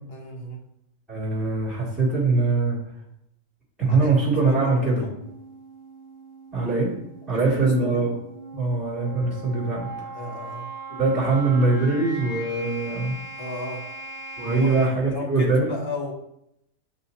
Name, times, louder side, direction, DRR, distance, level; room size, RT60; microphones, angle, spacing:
voice 1, 0.1-0.7 3.9-4.1 4.5-5.2 7.3-8.1 10.1-10.7 13.4-13.9 14.4-16.1, left 1 dB, 45° left, 0 dB, 1.1 m, -35 dB
voice 2, 1.1-2.8 3.8-5.0 6.5-6.9 7.3-8.1 8.5-9.9 10.9-13.1 14.4-15.7, right 3 dB, ahead, -9 dB, 2.5 m, -22 dB
sound 1, 5.2-14.8, right 2 dB, 30° left, 2.3 m, -39 dB
8.6 x 5.6 x 2.8 m, 0.80 s
omnidirectional pair, 1.5 m